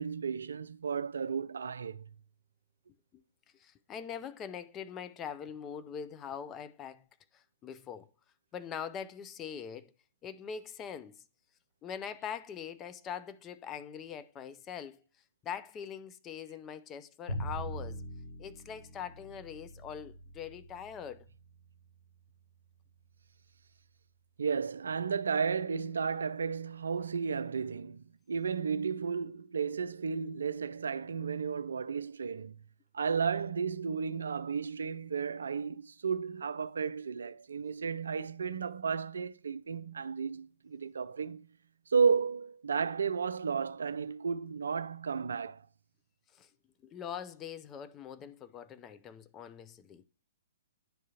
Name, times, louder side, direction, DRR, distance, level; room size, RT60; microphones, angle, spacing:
voice 1, 0.0-2.0 24.4-32.6 32.9-41.5 41.9-45.6, right 6 dB, 70° right, 0.3 m, -33 dB
voice 2, 3.5-7.1 7.3-8.1 8.5-9.9 10.2-11.2 11.8-15.0 15.4-18.0 18.4-21.3 37.7-37.8 46.3-46.5 46.8-50.0, left 8 dB, 20° left, 0.4 m, -43 dB
Bowed string instrument, 17.3-23.4, right 1 dB, 80° left, 1.0 m, -44 dB
10.0 x 3.6 x 2.9 m
figure-of-eight pair, 120°, 0 cm